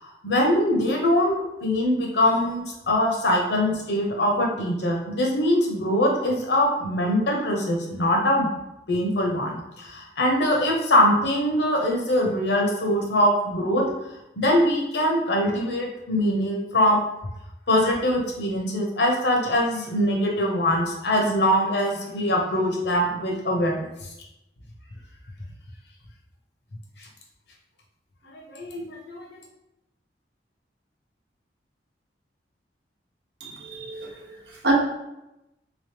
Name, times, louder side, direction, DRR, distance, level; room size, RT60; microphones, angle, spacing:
voice 1, 0.0-8.5 8.9-13.8 14.4-17.0 17.7-23.9 28.3-29.4, left 1 dB, 75° left, 0 dB, 0.9 m, -23 dB
voice 2, 33.4-34.7, right 1 dB, 75° right, -1 dB, 0.9 m, -29 dB
3.4 x 3.1 x 3.4 m, 0.90 s
head